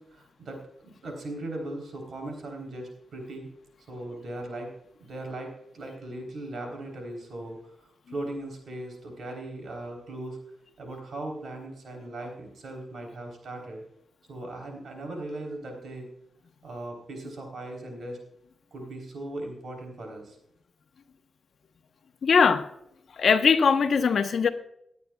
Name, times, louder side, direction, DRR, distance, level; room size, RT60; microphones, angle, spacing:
voice 1, 0.0-3.5 3.9-4.7 5.0-10.4 10.8-13.8 14.3-16.1 16.6-18.2 18.7-20.4, right 1 dB, 70° right, 3 dB, 3.6 m, -38 dB
voice 2, 22.2-22.6 23.2-24.5, left 5 dB, 70° left, 8 dB, 1.0 m, -20 dB
18.5 x 9.4 x 2.3 m, 0.76 s
cardioid pair, 75°, 0 cm